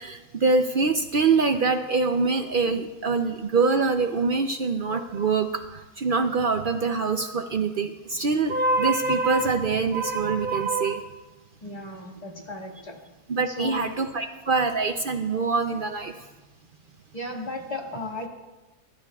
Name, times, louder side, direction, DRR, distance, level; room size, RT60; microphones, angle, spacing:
voice 1, 0.0-11.0 13.3-16.1, right 4 dB, 60° right, 7 dB, 0.5 m, -24 dB
voice 2, 11.6-13.0 13.5-14.0 17.1-18.3, left 2 dB, 25° left, -1 dB, 1.9 m, -35 dB
23.5 x 12.0 x 2.3 m, 1.2 s
omnidirectional pair, 1.6 m